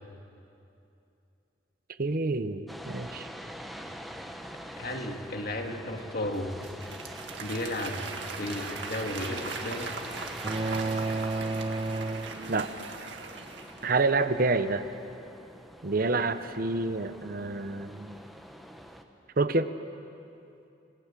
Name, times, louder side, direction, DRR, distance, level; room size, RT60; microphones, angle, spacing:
voice 1, 2.0-3.3 12.5-12.7 13.8-14.8 15.8-18.1 19.4-19.7, right 3 dB, 50° right, 11 dB, 0.9 m, -28 dB
sound 1, 2.7-19.0, equal, ahead, 1.2 m, -44 dB
voice 2, 4.8-6.5 7.4-8.0 8.4-10.0, left 1 dB, 55° left, 3 dB, 2.2 m, -34 dB
Applause / Crowd, 6.3-14.1, right 4 dB, 75° right, 1.9 m, -40 dB
sound 2, 10.4-13.0, right 3 dB, 25° right, 0.6 m, -32 dB
29.0 x 19.0 x 7.6 m, 2.7 s
head